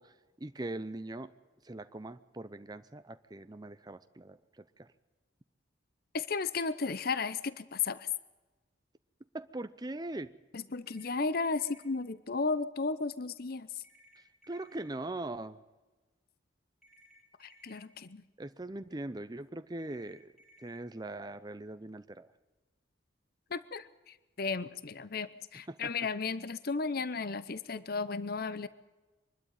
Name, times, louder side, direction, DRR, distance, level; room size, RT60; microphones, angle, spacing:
voice 1, 0.0-1.3 1.6-4.9 9.3-10.3 14.2-15.6 18.4-20.3 20.6-22.3 25.7-25.9, right 2 dB, 20° right, 11 dB, 0.6 m, -41 dB
voice 2, 6.1-8.1 10.5-13.8 17.4-18.2 23.5-28.7, left 4 dB, 50° left, 15 dB, 0.8 m, -34 dB
sound 1, 10.9-11.9 13.8-14.8 16.8-17.8 19.8-20.8, right 1 dB, ahead, 3.4 m, -61 dB
23.5 x 12.5 x 9.2 m, 1.2 s
head